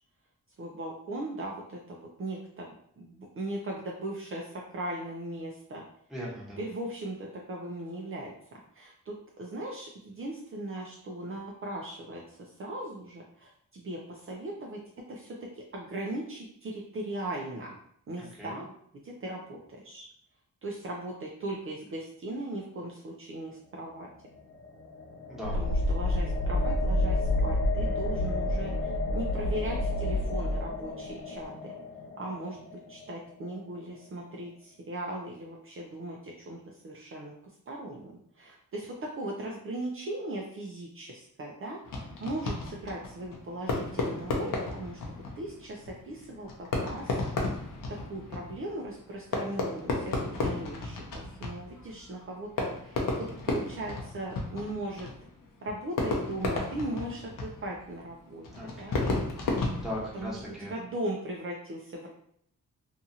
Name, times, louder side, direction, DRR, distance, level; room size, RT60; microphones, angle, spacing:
voice 1, 0.6-5.8 6.6-8.3 8.7-14.8 15.1-15.4 15.7-17.8 18.1-18.6 18.9-20.1 20.6-24.1 25.5-31.7 32.2-37.3 37.7-47.2 48.1-55.1 55.6-59.0 60.1-62.1, right 1 dB, 40° right, -2 dB, 0.5 m, -38 dB
voice 2, 6.1-6.6 18.2-18.6 25.3-25.6 58.5-59.0 59.4-60.7, equal, ahead, -7 dB, 1.2 m, -39 dB
sound 1, 23.8-34.0, left 4 dB, 40° left, 0.4 m, -37 dB
sound 2, 25.4-30.8, left 1 dB, 80° right, 0.6 m, -28 dB
Fireworks, 41.8-60.7, left 3 dB, 80° left, 0.7 m, -34 dB
2.7 x 2.4 x 2.7 m, 0.67 s
cardioid pair, 75°, 32 cm